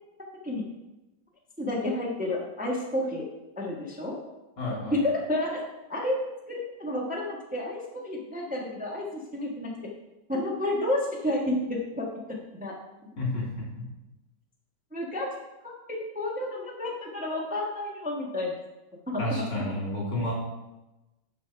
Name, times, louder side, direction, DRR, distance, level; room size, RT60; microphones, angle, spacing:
voice 1, 1.6-3.3 3.6-4.2 4.9-9.1 9.3-9.7 10.3-12.1 12.6-12.7 14.9-15.3 15.6-18.5, left 1 dB, 5° right, -2 dB, 1.2 m, -30 dB
voice 2, 4.6-5.0 13.2-13.5 13.8-13.9 19.2-20.3, left 1 dB, 70° left, -5 dB, 3.6 m, -30 dB
6.9 x 6.6 x 5.7 m, 1.0 s
omnidirectional pair, 2.0 m